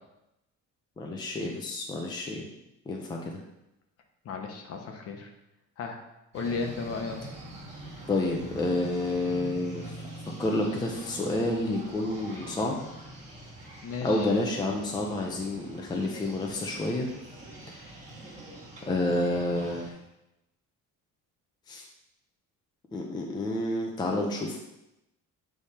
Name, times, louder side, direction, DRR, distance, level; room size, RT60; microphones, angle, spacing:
voice 1, 1.0-2.5 2.9-3.4 8.1-9.9 10.4-12.8 14.0-17.1 17.7-17.9 18.9-19.9 21.7-21.8 22.9-24.6, left 2 dB, 15° left, 0 dB, 0.5 m, -29 dB
voice 2, 4.2-5.3 5.8-6.0 6.3-7.2 13.8-14.3, left 4 dB, 45° left, 3 dB, 1.0 m, -34 dB
Street traffic a cafeteria and some noisy birds, 6.3-19.9, right 1 dB, 20° right, 1.7 m, -44 dB
8.3 x 3.4 x 4.2 m, 0.89 s
cardioid pair, 170°, 32 cm